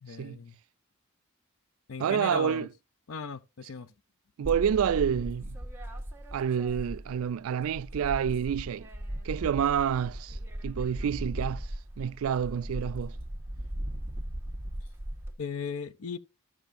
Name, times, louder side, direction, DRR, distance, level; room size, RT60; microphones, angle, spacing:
voice 1, 0.0-0.5 1.9-2.7 3.1-3.9 15.4-16.2, left 5 dB, 75° left, 0.6 m, -37 dB
voice 2, 2.0-2.7 4.4-5.6 6.3-8.9 9.2-10.4 10.6-13.2, right 8 dB, 75° right, 0.3 m, -28 dB
sound 1, 4.4-7.3 7.6-15.3, right 1 dB, 10° right, 1.3 m, -37 dB
13.5 x 6.1 x 2.6 m
head